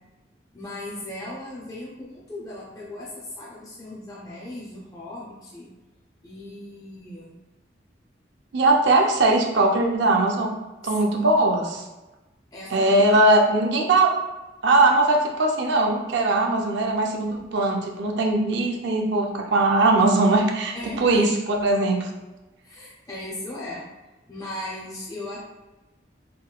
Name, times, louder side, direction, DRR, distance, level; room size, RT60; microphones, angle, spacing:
voice 1, 0.5-5.7 6.2-7.4 12.5-13.2 20.7-21.2 22.6-23.9 24.3-25.5, left 1 dB, 20° left, -6 dB, 0.4 m, -37 dB
voice 2, 8.5-10.5 10.8-11.8 12.7-14.1 14.6-22.1, right 2 dB, 65° right, 1 dB, 0.5 m, -20 dB
3.6 x 2.2 x 2.3 m, 1.1 s
head